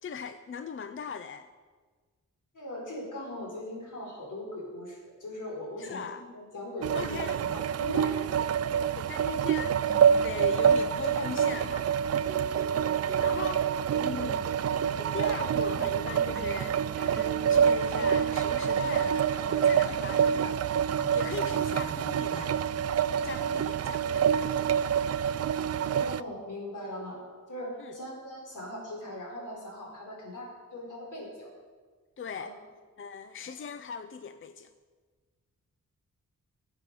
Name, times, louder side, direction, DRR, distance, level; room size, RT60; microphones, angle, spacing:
voice 1, 0.0-1.5 5.8-6.2 6.9-7.4 8.0-8.1 9.0-11.9 12.9-13.6 14.0-14.3 15.1-20.6 21.1-22.7 23.2-24.7 27.8-28.0 32.2-32.5 33.0-34.7, left 6 dB, 40° left, 11 dB, 0.5 m, -39 dB
voice 2, 2.5-8.2 8.7-8.8 13.1-13.5 14.1-14.3 21.2-21.6 25.8-27.2 27.5-31.5 32.4-32.5 33.4-33.5, left 1 dB, 75° left, -1 dB, 4.7 m, -40 dB
sound 1, 6.8-26.2, right 8 dB, 55° right, 0.4 m, -27 dB
sound 2, 9.1-23.6, right 1 dB, 10° right, 1.8 m, -47 dB
15.5 x 8.1 x 6.8 m, 1.5 s
wide cardioid pair, 115°, 31 cm